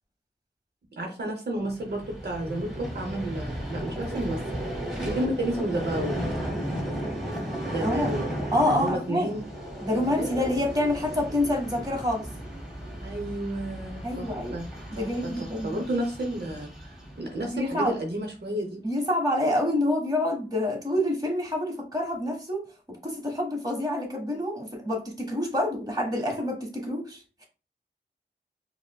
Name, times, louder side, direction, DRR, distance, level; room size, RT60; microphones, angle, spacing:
voice 1, 0.9-4.6 5.0-6.2 7.6-8.3 8.6-9.4 10.2-10.3 13.0-14.7 15.0-18.8, right 1 dB, 65° right, 1 dB, 0.8 m, -31 dB
Vehicle, 1.6-18.0, equal, 5° right, 1.4 m, -35 dB
voice 2, 8.5-9.3 9.8-12.3 14.0-14.6 14.9-15.9 17.5-17.9 18.8-22.6 23.0-27.5, left 1 dB, 20° right, 1 dB, 1.2 m, -27 dB
4.8 x 2.0 x 2.2 m, 0.34 s
cardioid pair, 50°, 18 cm